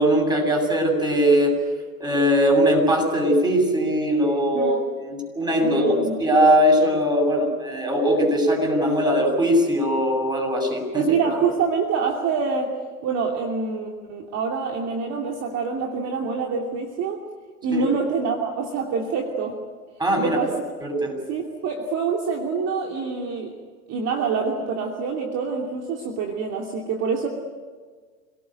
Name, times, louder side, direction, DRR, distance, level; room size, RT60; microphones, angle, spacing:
voice 1, 0.0-1.5 2.0-4.8 5.0-5.9 6.2-11.0 17.7-17.8 20.0-20.4 20.8-21.1, equal, 10° right, 1 dB, 7.7 m, -20 dB
voice 2, 5.6-6.2 10.9-12.7 13.0-17.2 17.6-19.6 20.2-20.7 21.3-23.5 23.9-27.3, right 5 dB, 35° right, 1 dB, 2.9 m, -26 dB
27.0 x 18.0 x 9.3 m, 1.5 s
hypercardioid pair, 100°, 44 cm